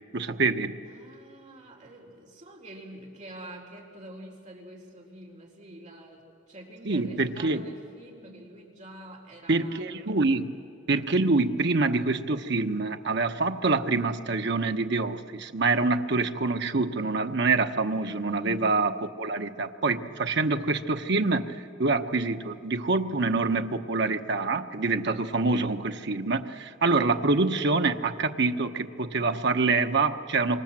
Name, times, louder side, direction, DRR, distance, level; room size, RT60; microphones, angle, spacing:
voice 1, 0.1-0.8 6.8-7.6 9.5-10.6 10.9-18.9 19.2-30.6, right 3 dB, 65° right, 6 dB, 1.1 m, -26 dB
voice 2, 0.8-10.3 18.3-18.7, right 1 dB, 40° right, -1 dB, 4.3 m, -46 dB
26.5 x 25.0 x 7.6 m, 2.5 s
head